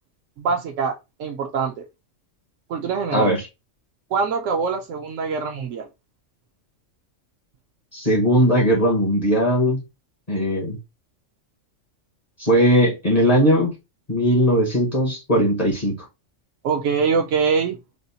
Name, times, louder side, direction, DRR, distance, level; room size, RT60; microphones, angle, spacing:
voice 1, 0.4-0.9 1.2-1.8 2.7-3.3 4.1-5.9 16.6-17.8, right 5 dB, 80° right, 1.0 m, -23 dB
voice 2, 3.1-3.5 7.9-9.8 10.3-10.8 12.4-13.7 14.1-16.1, equal, 35° left, 1.1 m, -19 dB
3.4 x 2.1 x 3.9 m
omnidirectional pair, 1.3 m